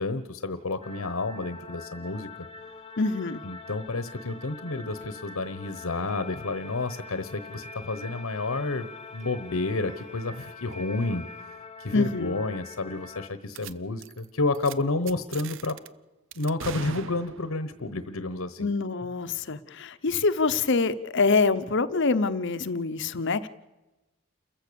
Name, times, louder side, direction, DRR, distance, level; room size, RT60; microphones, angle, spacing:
voice 1, 0.0-2.3 3.4-11.2 11.8-15.8 16.3-18.7, left 2 dB, 85° left, 11 dB, 1.1 m, -30 dB
sound 1, 0.8-13.3, left 4 dB, 25° left, 0.9 m, -44 dB
voice 2, 3.0-3.4 11.9-12.4 18.6-23.5, left 4 dB, 60° left, 13 dB, 0.9 m, -25 dB
sound 2, 5.0-5.1 6.0-11.4, left 1 dB, 35° right, 2.7 m, -49 dB
sound 3, 13.5-13.7 14.0-14.2 14.5-14.7 15.1-15.9 16.3-17.6, right 7 dB, 65° right, 0.7 m, -40 dB
29.0 x 15.0 x 7.0 m, 1.1 s
head